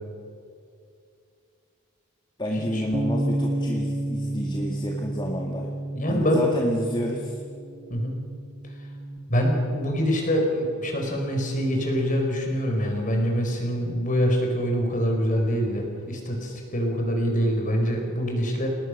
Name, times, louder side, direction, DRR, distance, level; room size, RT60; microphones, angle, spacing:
voice 1, 2.4-5.7 6.1-7.4, equal, 20° left, 0 dB, 2.0 m, -30 dB
Bass guitar, 2.9-9.2, right 1 dB, 35° right, 2.0 m, -31 dB
voice 2, 5.9-6.5 7.9-8.2 9.3-18.7, equal, 35° left, 2 dB, 5.4 m, -25 dB
29.5 x 19.0 x 6.7 m, 2.4 s
head